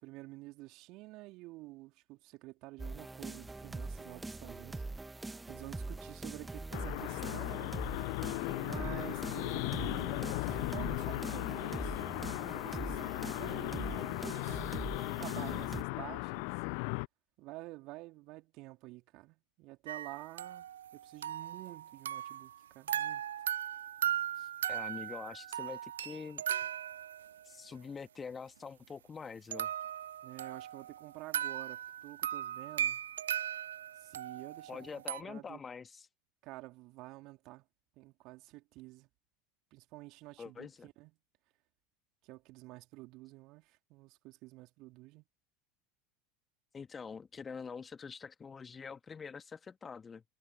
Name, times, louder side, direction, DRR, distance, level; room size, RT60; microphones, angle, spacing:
voice 1, 0.0-4.8 5.5-7.8 8.5-14.6 15.2-16.5 17.4-23.2 24.3-24.5 30.2-33.0 34.0-35.6 36.4-37.6 37.9-39.1 39.7-41.1 42.2-45.2, right 21 dB, 50° right, 3.4 m, -50 dB
sound 1, 2.8-15.8, right 2 dB, 10° right, 1.6 m, -43 dB
sound 2, 6.7-17.1, left 35 dB, 55° left, 0.5 m, -37 dB
sound 3, 19.9-22.6 22.9-27.5 29.5-35.2, right 10 dB, 75° right, 0.4 m, -38 dB
voice 2, 24.7-26.4 27.5-29.7 34.7-36.1 40.4-40.9 46.7-50.2, left 5 dB, 25° left, 1.8 m, -45 dB
figure-of-eight pair, 80°, 0 cm